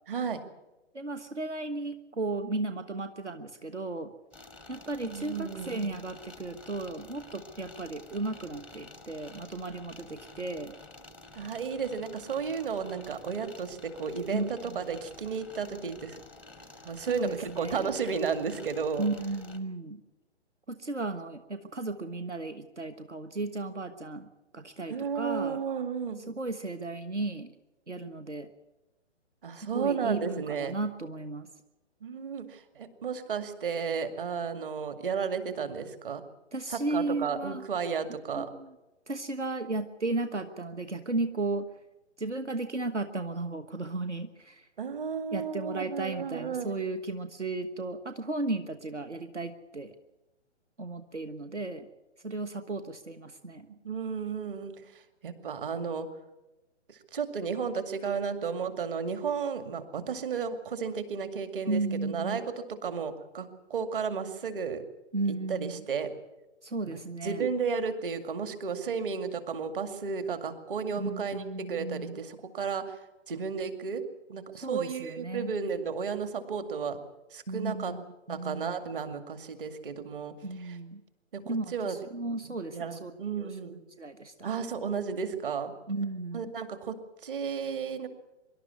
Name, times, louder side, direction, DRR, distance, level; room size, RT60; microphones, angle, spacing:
voice 1, 0.1-0.4 5.0-5.9 11.4-16.2 16.8-19.1 24.9-26.2 29.4-30.7 32.0-36.2 36.7-38.5 44.8-46.7 53.7-54.7 55.2-56.1 56.9-64.8 65.5-66.1 66.9-73.0 73.3-74.0 74.3-77.0 77.3-77.9 78.3-80.3 80.6-80.8 81.3-82.0 82.4-83.8 84.4-85.7 86.3-88.1, right 6 dB, 50° right, 9 dB, 2.3 m, -33 dB
voice 2, 0.9-4.1 4.7-10.7 14.3-14.8 17.0-17.9 19.0-20.0 20.7-24.3 24.5-25.6 26.3-27.5 27.9-28.5 29.7-31.5 36.5-37.6 38.3-38.7 39.1-41.7 42.2-44.7 45.3-49.9 50.8-51.9 52.2-53.7 61.7-62.4 65.1-65.8 66.6-67.5 71.0-72.2 74.5-75.5 77.5-78.0 78.3-78.7 80.4-81.0 81.5-83.1 83.4-84.5 85.9-86.5, right 2 dB, 80° right, 9 dB, 1.4 m, -35 dB
sound 1, 4.3-19.6, left 2 dB, 5° right, 0.6 m, -50 dB
24.5 x 12.0 x 9.6 m, 1.0 s
figure-of-eight pair, 130°, 35 cm